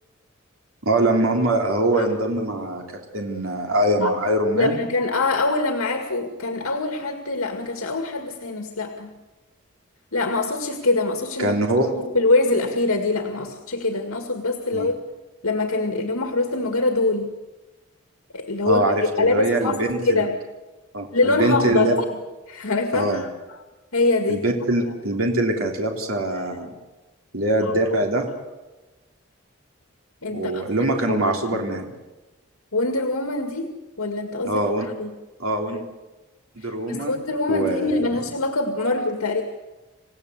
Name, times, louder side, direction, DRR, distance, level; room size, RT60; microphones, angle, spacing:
voice 1, 0.8-2.8 3.1-4.8 11.4-11.9 14.7-14.9 18.6-20.3 20.9-21.9 22.9-23.2 24.3-26.7 27.3-28.3 30.3-31.9 34.4-34.9 35.4-35.8 36.6-37.2 37.5-38.1, right 1 dB, 70° right, 1 dB, 3.3 m, -23 dB
voice 2, 4.6-9.1 10.1-11.5 11.9-15.0 15.4-17.3 18.3-18.8 19.2-20.3 21.1-22.0 22.5-23.3 23.9-24.4 27.6-27.7 30.2-31.7 32.7-33.7 34.0-34.6 35.0-35.1 36.6-39.4, left 2 dB, 85° left, 4 dB, 2.1 m, -24 dB
29.0 x 16.5 x 8.2 m, 1.1 s
head